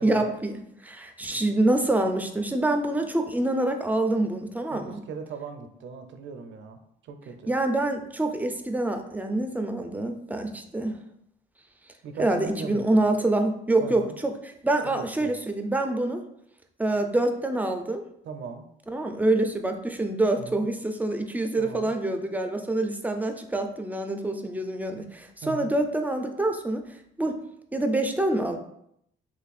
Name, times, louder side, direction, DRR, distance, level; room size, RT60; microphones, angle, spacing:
voice 1, 0.0-5.0 7.5-11.0 12.2-16.2 16.8-18.0 18.9-26.8 27.2-27.4 27.7-28.6, right 2 dB, 10° right, 5 dB, 0.4 m, -26 dB
voice 2, 4.7-7.5 12.0-13.0 13.8-14.2 14.8-15.3 18.2-18.6 20.4-20.6 21.6-21.9 25.4-25.7, right 5 dB, 70° right, 7 dB, 0.5 m, -39 dB
3.1 x 2.5 x 4.0 m, 0.74 s
cardioid pair, 90°, 20 cm